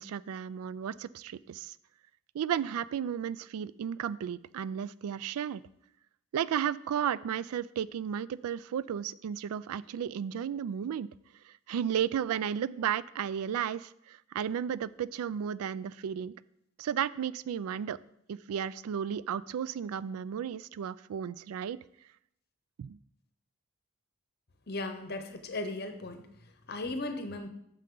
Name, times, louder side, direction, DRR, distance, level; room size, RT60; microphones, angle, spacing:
voice 1, 0.0-1.8 2.3-5.6 6.3-11.1 11.5-16.3 16.8-18.0 18.3-21.8 22.8-23.0, right 8 dB, 85° right, 19 dB, 0.3 m, -33 dB
voice 2, 24.7-26.3 26.7-27.5, left 2 dB, 50° left, 7 dB, 0.9 m, -36 dB
9.0 x 6.7 x 3.8 m, 0.76 s
head